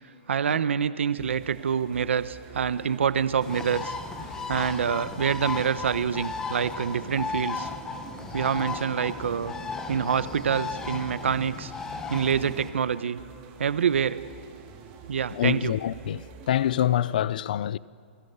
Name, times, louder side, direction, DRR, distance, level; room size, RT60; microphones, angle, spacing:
voice 1, 0.3-3.9 4.5-7.7 8.3-9.5 9.9-11.7 12.1-13.2 13.6-14.2 15.1-15.7, right 7 dB, 90° right, 1.1 m, -26 dB
sound 1, 1.2-17.2, right 5 dB, 25° right, 2.7 m, -47 dB
Bird, 3.4-12.7, left 4 dB, 10° left, 1.3 m, -35 dB
voice 2, 15.3-17.8, left 11 dB, 45° left, 0.6 m, -26 dB
29.0 x 23.0 x 8.2 m
hypercardioid pair, 175°, 6 cm